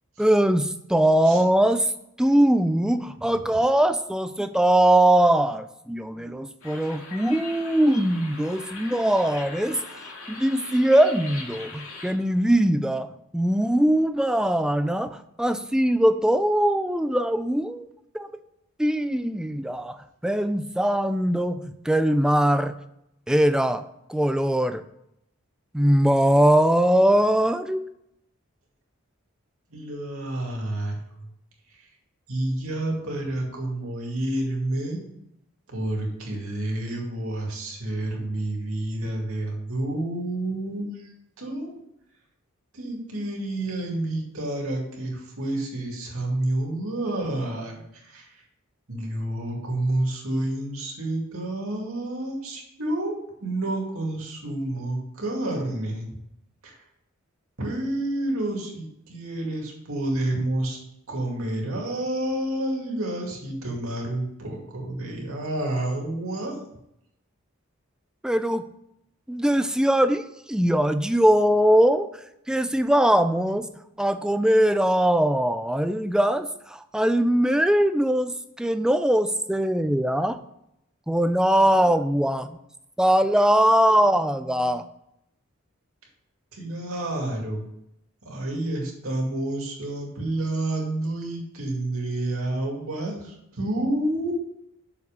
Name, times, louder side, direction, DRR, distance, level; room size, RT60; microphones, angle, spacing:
voice 1, 0.2-1.9 2.2-9.8 10.3-13.1 13.3-17.9 18.1-18.3 18.8-22.7 23.3-23.8 24.1-24.8 25.7-27.8 68.2-68.7 69.3-72.1 72.5-73.7 74.0-78.3 78.6-80.4 81.1-82.6 83.0-84.9, right 1 dB, 5° right, 10 dB, 0.3 m, -21 dB
sound 1, 6.6-12.1, left 3 dB, 75° left, 2.0 m, -41 dB
voice 2, 29.7-31.3 32.3-35.0 35.7-41.0 41.4-41.7 42.7-48.3 48.9-56.1 56.6-56.7 57.6-60.8 61.1-66.6 86.5-87.6 88.2-94.3, right 1 dB, 80° right, -1 dB, 2.3 m, -29 dB
6.6 x 5.4 x 5.2 m, 0.80 s
head